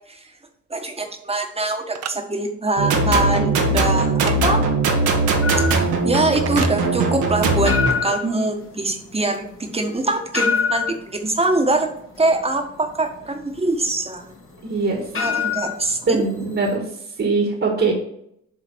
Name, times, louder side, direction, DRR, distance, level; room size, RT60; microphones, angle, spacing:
voice 1, 0.7-4.6 6.0-11.9 12.2-14.3 15.1-16.2, right 2 dB, 20° right, 4 dB, 1.3 m, -23 dB
sound 1, 1.9-2.1 4.2-4.4 6.5-6.8, right 8 dB, 55° right, 0.7 m, -30 dB
sound 2, 2.8-7.9, right 2 dB, 85° right, 1.6 m, -20 dB
sound 3, 5.4-16.8, left 6 dB, 45° left, 1.7 m, -28 dB
voice 2, 14.6-15.0 16.1-16.8 17.2-17.9, right 3 dB, 40° right, 0 dB, 1.6 m, -21 dB
7.2 x 3.8 x 6.1 m, 0.73 s
cardioid pair, 90°, 30 cm